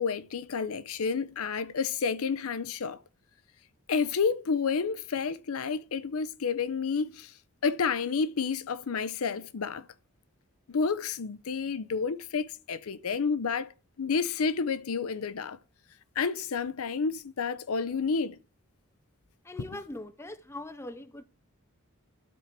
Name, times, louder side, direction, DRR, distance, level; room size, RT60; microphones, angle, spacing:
voice 1, 0.0-3.0 3.9-7.3 7.6-9.9 10.7-13.7 14.0-15.6 16.2-18.4, left 5 dB, 75° left, 0.5 m, -30 dB
voice 2, 19.4-21.2, left 1 dB, 10° left, 0.4 m, -41 dB
12.5 x 4.5 x 4.5 m
head